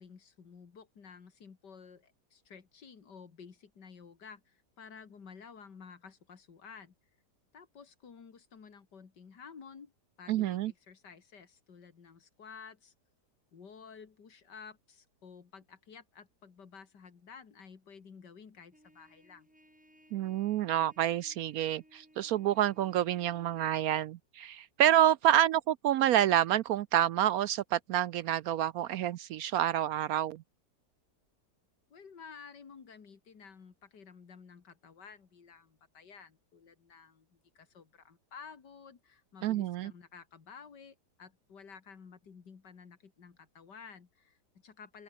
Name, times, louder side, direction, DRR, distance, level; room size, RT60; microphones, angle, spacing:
voice 1, 0.0-6.9 7.5-9.9 10.2-12.9 13.5-19.5 31.9-45.0, left 6 dB, 80° left, 2.8 m, -52 dB
voice 2, 10.3-10.7 20.1-30.4 39.4-39.9, right 11 dB, 70° right, 0.9 m, -28 dB
Trumpet, 18.7-23.7, equal, 5° right, 2.5 m, -62 dB
open air
omnidirectional pair, 1.8 m